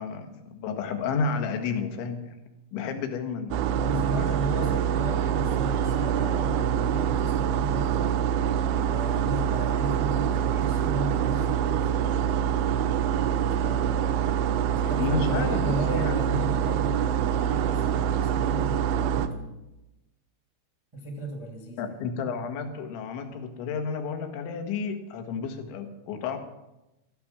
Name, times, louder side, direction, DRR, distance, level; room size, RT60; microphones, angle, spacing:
voice 1, 0.0-2.4 2.7-3.7 4.6-4.8 15.0-16.6 21.8-26.4, left 5 dB, 75° left, 5 dB, 3.9 m, -31 dB
sound 1, 3.5-19.3, right 9 dB, 80° right, 3.1 m, -25 dB
voice 2, 3.8-8.1 8.8-11.9 13.6-14.2 14.7-19.5 20.9-22.0, right 1 dB, 15° right, 0 dB, 0.9 m, -35 dB
15.5 x 14.5 x 6.1 m, 0.95 s
omnidirectional pair, 5.6 m